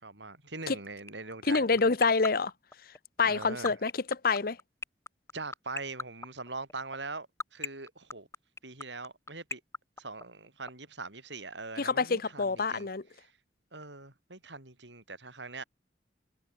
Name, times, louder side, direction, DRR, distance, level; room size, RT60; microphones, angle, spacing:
voice 1, 0.0-1.9 3.2-3.7 5.3-7.3 7.5-8.3 8.6-9.6 10.0-12.9 13.2-13.3 13.7-15.6, right 3 dB, 85° right, 7.4 m, -42 dB
sound 1, 1.1-10.7, left 3 dB, 15° left, 3.2 m, -35 dB
voice 2, 1.4-2.5 3.2-4.6 11.8-13.0, left 4 dB, 55° left, 0.8 m, -27 dB
head